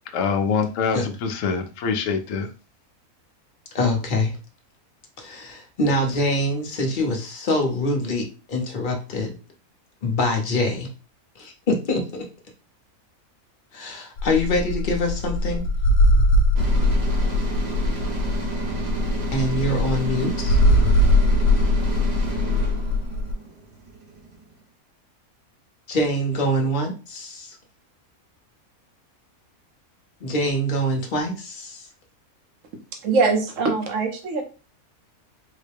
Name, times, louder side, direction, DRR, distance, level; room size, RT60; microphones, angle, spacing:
voice 1, 0.1-2.5, left 5 dB, 65° left, 5 dB, 0.9 m, -24 dB
voice 2, 3.7-4.4 5.2-9.4 10.0-10.9 11.4-12.2 13.7-15.6 19.3-20.6 25.9-27.6 30.2-31.9, left 1 dB, 40° left, 1 dB, 0.9 m, -24 dB
sound 1, 14.2-23.3, left 1 dB, 90° left, 1.1 m, -21 dB
sound 2, 16.6-24.5, right 3 dB, 45° right, 0.6 m, -32 dB
voice 3, 32.9-34.4, right 4 dB, 65° right, 4 dB, 1.1 m, -22 dB
3.9 x 2.1 x 3.3 m, 0.34 s
omnidirectional pair, 1.5 m